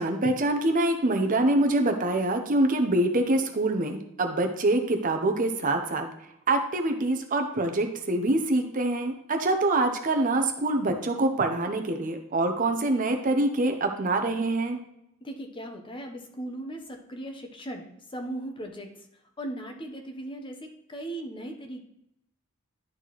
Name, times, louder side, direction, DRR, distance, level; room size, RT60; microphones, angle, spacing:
voice 1, 0.0-6.1 6.5-14.8, right 2 dB, 35° right, 4 dB, 0.7 m, -25 dB
voice 2, 15.2-18.9 19.4-21.8, right 1 dB, 25° left, 4 dB, 0.8 m, -38 dB
11.0 x 4.3 x 3.0 m, 0.80 s
head